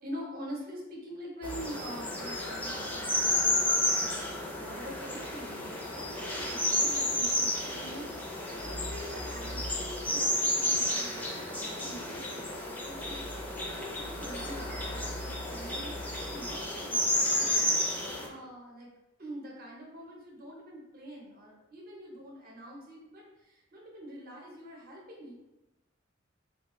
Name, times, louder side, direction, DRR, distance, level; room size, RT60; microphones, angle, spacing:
voice 1, 0.0-18.9 19.2-25.3, equal, 50° right, -2 dB, 0.8 m, -45 dB
sound 1, 1.4-18.3, left 1 dB, 10° left, 0.4 m, -31 dB
3.4 x 2.2 x 3.0 m, 0.96 s
head